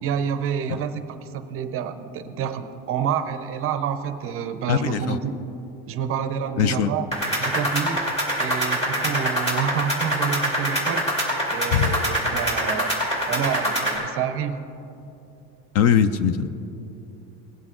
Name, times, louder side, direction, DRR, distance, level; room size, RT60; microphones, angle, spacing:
voice 1, 0.0-5.4 5.9-7.1 7.4-8.1 8.4-11.2 11.5-12.9 13.3-14.6, right 8 dB, 35° right, 10 dB, 0.6 m, -28 dB
voice 2, 4.7-5.2 6.6-7.0 11.7-12.0 15.7-16.5, left 8 dB, 45° left, 13 dB, 0.4 m, -21 dB
sound 1, 7.1-14.0, equal, 15° left, 2.7 m, -25 dB
18.5 x 7.9 x 3.7 m, 2.8 s
cardioid pair, 160°, 37 cm